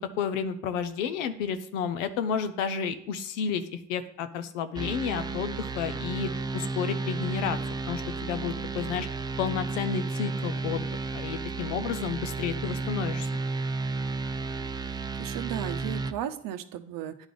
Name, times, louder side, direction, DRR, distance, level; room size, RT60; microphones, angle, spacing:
voice 1, 0.0-7.6 7.9-9.1 9.4-13.3, left 7 dB, 90° left, 10 dB, 0.6 m, -31 dB
sound 1, 4.8-16.1, right 3 dB, 10° right, 0.4 m, -32 dB
voice 2, 14.8-17.3, right 11 dB, 65° right, 10 dB, 0.7 m, -36 dB
9.8 x 3.4 x 3.8 m, 0.69 s
hypercardioid pair, 55°, 37 cm